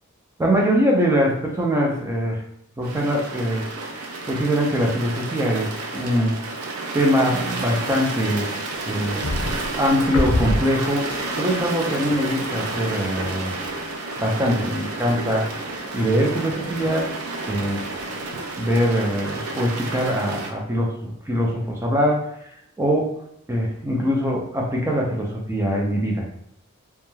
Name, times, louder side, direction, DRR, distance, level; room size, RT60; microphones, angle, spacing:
voice 1, 0.4-2.4 2.8-3.7 4.2-6.4 6.9-8.5 8.9-9.3 9.8-11.1 11.4-13.5 14.2-15.5 15.9-17.1 17.5-17.8 18.6-22.2 22.8-23.1 23.5-26.2, equal, 10° right, -1 dB, 0.3 m, -22 dB
sound 1, 2.8-20.5, right 2 dB, 85° right, 0.4 m, -31 dB
sound 2, 8.7-11.2 11.6-11.7 12.1-12.6 13.2-13.9 14.2-18.0 18.3-18.9, left 1 dB, 80° left, 0.6 m, -29 dB
2.2 x 2.1 x 3.0 m, 0.74 s
head